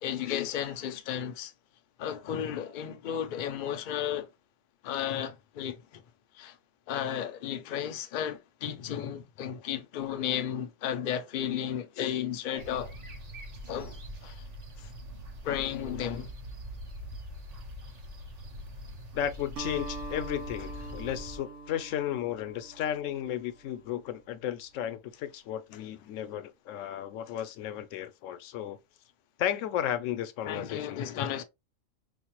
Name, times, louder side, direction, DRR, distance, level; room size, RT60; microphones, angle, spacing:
voice 1, 0.0-1.5 2.0-4.3 4.8-6.0 6.3-6.6 6.9-12.9 13.7-14.4 14.8-14.9 15.4-16.3 30.4-31.4, left 9 dB, 60° left, 0.5 m, -33 dB
sound 1, 12.6-21.4, equal, 40° right, 0.6 m, -43 dB
voice 2, 19.1-28.8 29.4-31.2, left 10 dB, 80° left, 0.9 m, -34 dB
Acoustic guitar, 19.6-24.0, right 2 dB, 75° right, 1.3 m, -44 dB
5.0 x 2.0 x 2.9 m
omnidirectional pair, 1.3 m